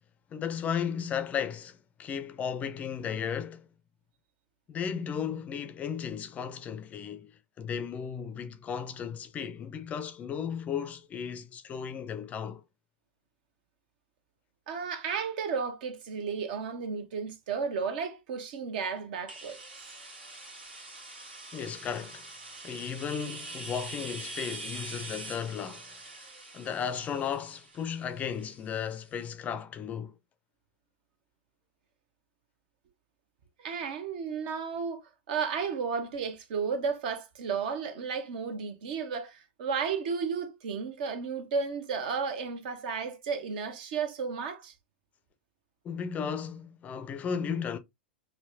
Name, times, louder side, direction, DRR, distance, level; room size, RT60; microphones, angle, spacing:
voice 1, 0.3-3.7 4.7-7.3 7.6-12.6 21.5-22.3 22.6-25.9 26.5-30.2 45.8-47.8, left 7 dB, 25° left, 0.5 m, -35 dB
voice 2, 14.7-19.6 33.6-35.0 35.3-44.7, right 5 dB, 55° right, 0.9 m, -33 dB
sound 1, 19.3-28.9, right 2 dB, 75° right, 1.6 m, -44 dB
5.6 x 2.2 x 2.5 m
figure-of-eight pair, 95°, 6 cm